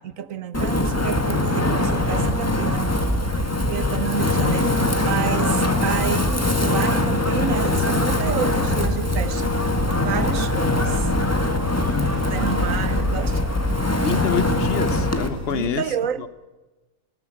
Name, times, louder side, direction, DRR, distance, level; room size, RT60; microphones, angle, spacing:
voice 1, 0.0-2.9 3.6-9.5 10.0-11.1 12.3-13.4 15.5-16.3, right 8 dB, 60° right, 1.2 m, -29 dB
Wind, 0.5-15.3, left 1 dB, 10° left, 1.6 m, -22 dB
sound 1, 1.8-15.7, left 4 dB, 25° left, 2.7 m, -37 dB
sound 2, 8.1-15.7, right 3 dB, 80° right, 2.6 m, -38 dB
voice 2, 14.0-16.3, left 8 dB, 45° left, 1.0 m, -27 dB
20.0 x 18.0 x 7.7 m
omnidirectional pair, 1.7 m